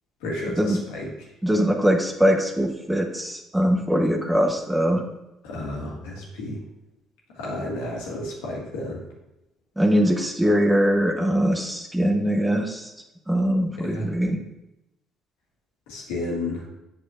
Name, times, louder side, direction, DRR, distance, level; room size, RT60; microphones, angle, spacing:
voice 1, 0.2-1.1 5.4-6.6 7.3-9.0 13.8-14.1 15.9-16.7, left 1 dB, 80° left, -4 dB, 1.9 m, -32 dB
voice 2, 1.4-5.0 9.8-12.9 13.3-14.4, equal, 10° right, 3 dB, 1.0 m, -22 dB
7.6 x 6.3 x 2.5 m, 0.92 s
hypercardioid pair, 55°, 0 cm